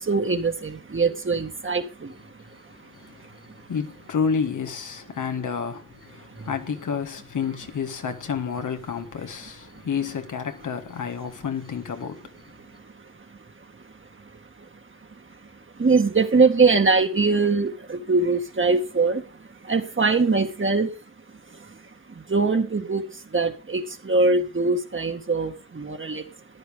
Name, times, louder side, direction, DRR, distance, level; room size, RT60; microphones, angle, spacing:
voice 1, 0.0-3.6 6.2-6.5 9.7-9.8 12.6-14.3 14.6-14.7 15.1-20.9 21.5-21.8 22.1-26.3, right 4 dB, 40° right, 1.8 m, -24 dB
voice 2, 3.7-12.3, left 6 dB, 75° left, 1.5 m, -30 dB
13.5 x 10.5 x 3.6 m
cardioid pair, 55°, 31 cm